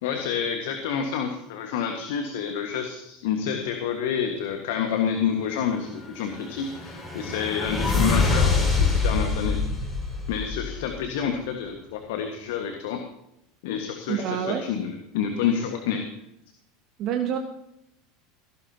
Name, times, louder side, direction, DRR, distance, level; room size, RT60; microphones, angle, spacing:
voice 1, 0.0-9.6 10.3-13.0 13.6-16.0, left 7 dB, 60° left, 4 dB, 1.6 m, -28 dB
sound 1, 6.1-11.1, left 4 dB, 10° left, 6.0 m, -25 dB
voice 2, 14.1-14.6 17.0-17.4, right 9 dB, 45° right, 4 dB, 1.4 m, -27 dB
17.0 x 16.0 x 2.9 m, 0.81 s
figure-of-eight pair, 75°, 0 cm